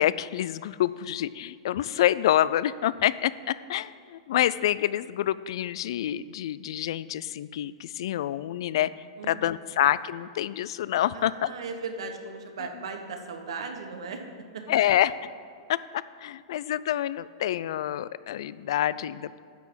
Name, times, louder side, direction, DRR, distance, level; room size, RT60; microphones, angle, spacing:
voice 1, 0.0-11.5 14.7-15.1 15.7-19.4, left 12 dB, 70° left, 17 dB, 0.4 m, -27 dB
voice 2, 11.1-14.2 14.5-14.6, right 4 dB, 80° right, 5 dB, 1.3 m, -37 dB
10.5 x 6.1 x 7.0 m, 2.2 s
hypercardioid pair, 125°, 3 cm